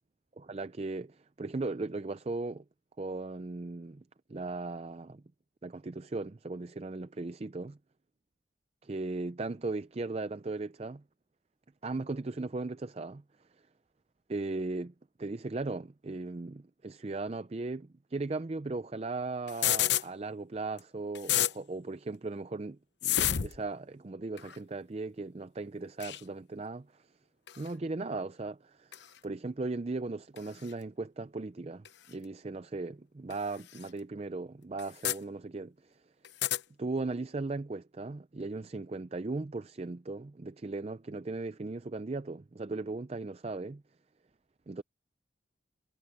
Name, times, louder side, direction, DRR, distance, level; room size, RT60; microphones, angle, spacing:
voice 1, 0.4-2.6 3.0-4.0 4.3-5.2 5.6-7.8 8.8-11.0 11.8-13.2 14.3-14.9 15.2-27.1 27.6-29.0 29.2-36.0 36.8-43.8 44.7-44.8, right 3 dB, 35° right, 0.4 m, -37 dB
sound 1, 19.5-20.0 20.8-20.9 21.1-21.5 23.0-23.6 24.4-24.6 26.0-26.2 27.5-27.7 28.9-29.0 30.4-30.5 31.9-32.0 33.3-33.4 33.8-33.9 34.8-35.2 36.2-36.6, left 11 dB, 70° left, 0.9 m, -29 dB
head